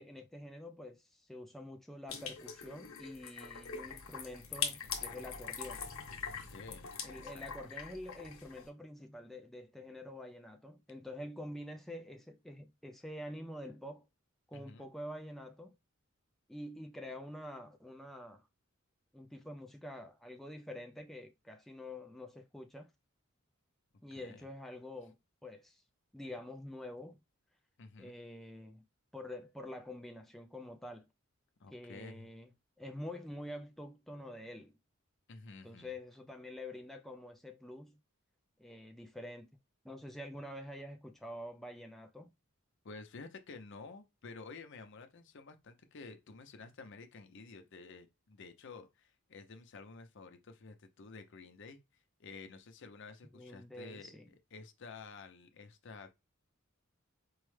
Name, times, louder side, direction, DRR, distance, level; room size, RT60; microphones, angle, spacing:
voice 1, 0.0-5.8 7.0-14.0 14.5-15.7 16.5-18.5 19.1-22.9 24.0-25.2 25.4-25.8 26.1-27.2 28.0-28.8 29.1-31.1 31.7-32.5 32.8-34.8 35.6-38.0 38.6-39.5 39.8-42.3 53.3-54.3, left 1 dB, ahead, 0.3 m, -47 dB
sound 1, 2.1-8.7, left 6 dB, 85° left, 0.9 m, -42 dB
voice 2, 6.5-7.5 14.5-14.9 24.1-24.5 27.8-28.1 31.6-32.3 35.3-35.9 42.8-56.1, left 4 dB, 60° left, 0.6 m, -51 dB
4.5 x 2.0 x 3.2 m
head